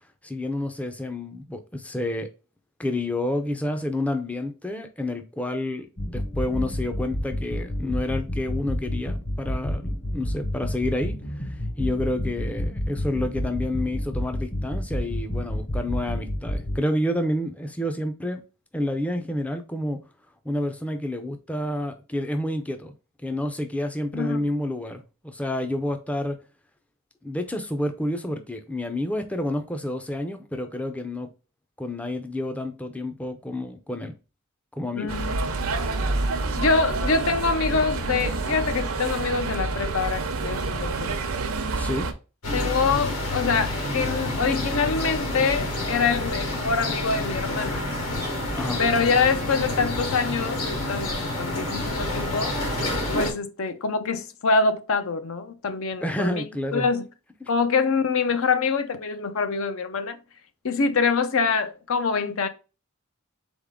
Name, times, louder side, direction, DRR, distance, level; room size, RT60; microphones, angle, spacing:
voice 1, 0.2-2.3 2.8-18.4 18.7-20.0 20.5-22.9 23.2-26.4 27.2-31.3 31.8-34.1 34.8-35.2 41.7-42.1 48.6-48.8 56.0-56.9, left 1 dB, 5° left, 0.4 m, -29 dB
sound 1, 6.0-16.8, left 1 dB, 40° left, 1.0 m, -29 dB
voice 2, 24.1-24.5 35.0-35.7 36.6-41.3 42.5-47.8 48.8-52.5 53.1-56.4 56.7-57.0 57.5-60.2 60.6-62.5, left 4 dB, 75° left, 0.6 m, -25 dB
sound 2, 35.1-42.1, right 3 dB, 75° right, 0.7 m, -28 dB
sound 3, 42.4-53.3, left 1 dB, 90° left, 2.0 m, -28 dB
4.1 x 3.5 x 3.6 m
head